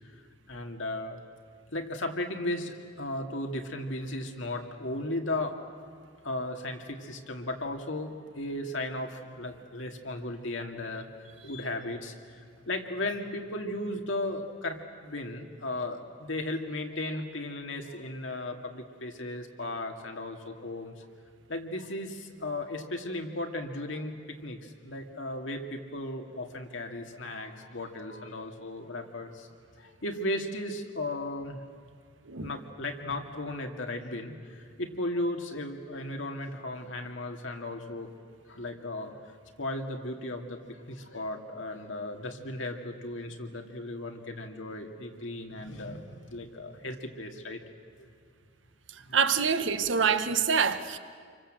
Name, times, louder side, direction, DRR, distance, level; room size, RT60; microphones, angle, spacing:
voice 1, 0.1-1.2 1.7-5.6 6.2-11.1 11.4-21.1 21.5-29.5 29.8-31.6 32.4-38.1 38.5-47.6 48.0-48.1 49.1-49.2 49.8-50.0, left 1 dB, 90° left, 3 dB, 2.4 m, -36 dB
voice 2, 49.1-51.0, right 6 dB, 80° right, 10 dB, 1.3 m, -26 dB
27.5 x 24.5 x 7.7 m, 2.1 s
head